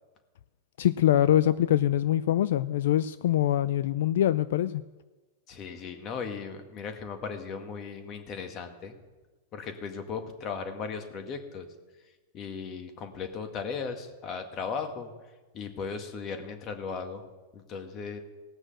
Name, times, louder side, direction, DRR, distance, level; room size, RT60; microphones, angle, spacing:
voice 1, 0.8-4.8, left 12 dB, 75° left, 15 dB, 0.4 m, -24 dB
voice 2, 5.5-8.9 9.5-11.7 12.3-15.1 15.5-17.2 17.5-18.2, left 5 dB, 35° left, 6 dB, 1.8 m, -37 dB
18.0 x 6.2 x 7.8 m, 1.2 s
hypercardioid pair, 130°, 0 cm